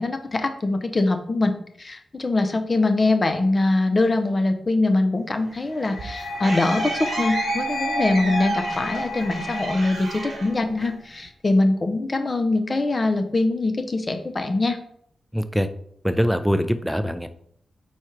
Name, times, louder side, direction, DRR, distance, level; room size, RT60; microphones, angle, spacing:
voice 1, 0.0-14.8, left 2 dB, 40° left, 7 dB, 0.6 m, -23 dB
sound 1, 5.4-11.3, right 3 dB, 65° right, 1.1 m, -35 dB
sound 2, 5.8-10.8, equal, 70° left, 0.9 m, -30 dB
voice 2, 15.3-15.7 16.0-17.3, equal, ahead, 10 dB, 0.5 m, -23 dB
4.2 x 2.4 x 4.5 m, 0.67 s
supercardioid pair, 45°, 0 cm